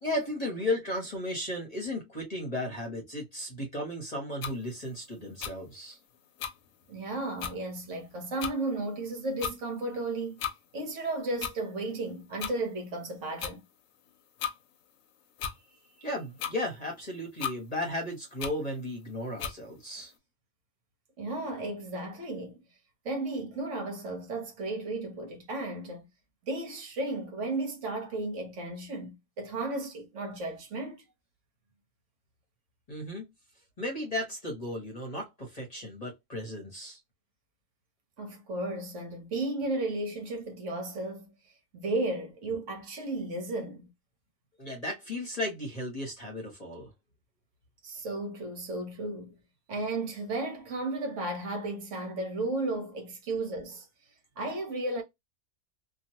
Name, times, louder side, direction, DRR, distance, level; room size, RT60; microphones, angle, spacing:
voice 1, 0.0-6.0 16.0-20.1 32.9-33.2 33.8-37.0 44.6-46.9, left 1 dB, 35° left, 0.9 m, -35 dB
sound 1, 4.4-4.5 5.4-5.5 6.4-6.5 7.1-7.2 7.4-7.6 8.4-8.5 9.4-9.6 10.4-10.6 11.4-11.5 12.4-12.5 13.4-13.5 14.4-14.6 15.4-15.6 16.4-16.5 17.4-17.6 18.4-18.5 19.4-19.6, left 8 dB, 80° left, 1.0 m, -34 dB
voice 2, 6.9-10.4 10.7-13.6 21.2-22.6 23.0-26.0 26.4-31.0 38.2-41.3 41.7-43.9 47.8-49.4 49.7-53.9 54.4-55.0, right 2 dB, 65° right, 1.3 m, -34 dB
3.0 x 2.4 x 2.7 m
omnidirectional pair, 1.4 m